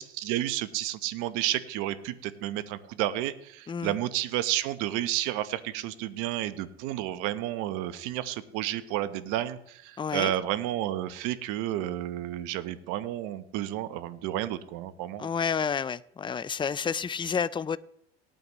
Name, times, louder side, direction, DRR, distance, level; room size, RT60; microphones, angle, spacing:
voice 1, 0.0-15.3, right 13 dB, 70° right, 12 dB, 1.1 m, -31 dB
voice 2, 10.0-10.3 15.2-17.8, left 6 dB, 15° left, 16 dB, 0.5 m, -30 dB
19.0 x 9.1 x 3.1 m, 0.74 s
hypercardioid pair, 75°, 32 cm